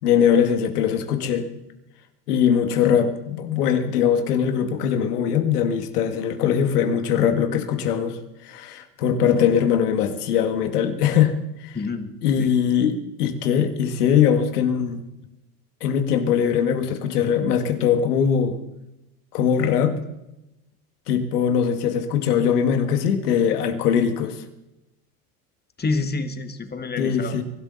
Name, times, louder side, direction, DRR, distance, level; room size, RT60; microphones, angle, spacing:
voice 1, 0.0-1.5 2.3-11.3 11.6-11.8 12.2-15.0 15.8-18.6 19.3-20.0 21.1-24.4 27.0-27.4, left 8 dB, 80° left, 7 dB, 2.1 m, -21 dB
voice 2, 11.7-12.5 25.8-27.4, left 3 dB, 20° left, 8 dB, 1.9 m, -28 dB
23.5 x 12.5 x 4.2 m, 0.91 s
hypercardioid pair, 90°, 45 cm